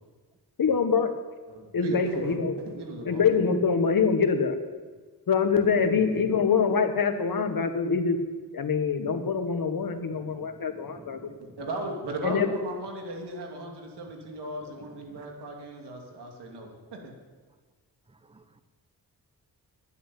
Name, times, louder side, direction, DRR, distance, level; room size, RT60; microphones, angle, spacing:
voice 1, 0.6-1.1 1.7-2.5 3.0-4.6 5.3-8.2 8.5-11.2 12.2-12.5, left 5 dB, 60° left, 7 dB, 1.5 m, -24 dB
voice 2, 1.5-2.4 2.6-3.3 5.8-6.2 11.6-17.1, right 2 dB, 85° right, 1 dB, 2.8 m, -37 dB
voice 3, 10.2-11.6 15.1-15.2 18.1-18.6, right 3 dB, 15° right, 10 dB, 0.9 m, -52 dB
11.0 x 8.3 x 9.0 m, 1.4 s
cardioid pair, 65°, 40 cm